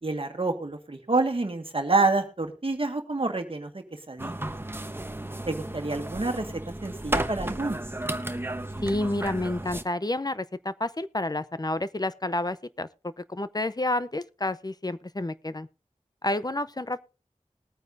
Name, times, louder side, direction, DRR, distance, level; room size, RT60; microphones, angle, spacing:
voice 1, 0.0-4.5 5.4-7.8, right 3 dB, 50° right, 1.7 m, -28 dB
sound 1, 4.2-9.8, right 1 dB, 20° right, 1.0 m, -33 dB
voice 2, 8.8-15.7 16.2-17.0, left 2 dB, 35° left, 0.6 m, -30 dB
20.5 x 9.1 x 2.6 m
wide cardioid pair, 45°, 12 cm